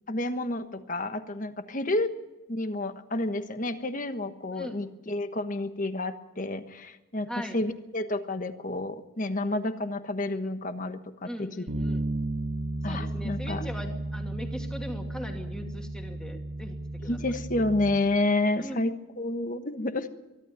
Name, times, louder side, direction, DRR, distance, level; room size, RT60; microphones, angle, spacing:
voice 1, 0.1-2.1 2.5-11.6 12.8-13.7 17.0-20.1, left 2 dB, 40° left, 9 dB, 1.3 m, -30 dB
voice 2, 4.5-4.8 7.3-7.6 11.2-12.0 12.9-17.2 18.6-18.8, equal, 5° left, 3 dB, 2.4 m, -40 dB
Bass guitar, 11.7-17.9, right 1 dB, 80° right, 2.4 m, -33 dB
23.5 x 12.5 x 8.9 m, 1.1 s
head